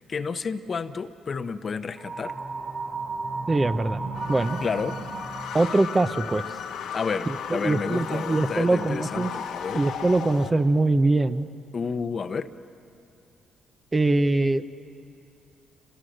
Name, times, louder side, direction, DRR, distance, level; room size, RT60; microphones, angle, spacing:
voice 1, 0.0-2.3 4.6-5.0 6.9-9.8 11.7-12.5, left 5 dB, 45° left, 10 dB, 0.8 m, -30 dB
sound 1, 2.0-6.0, right 3 dB, 40° right, 4.7 m, -34 dB
voice 2, 3.5-4.0 4.3-4.6 5.5-6.4 7.5-9.3 9.7-11.5 13.9-14.7, right 2 dB, 20° right, 11 dB, 0.7 m, -22 dB
sound 2, 4.1-10.5, left 7 dB, 85° left, 1.3 m, -35 dB
29.0 x 23.5 x 6.5 m, 2.6 s
cardioid pair, 90°, 0 cm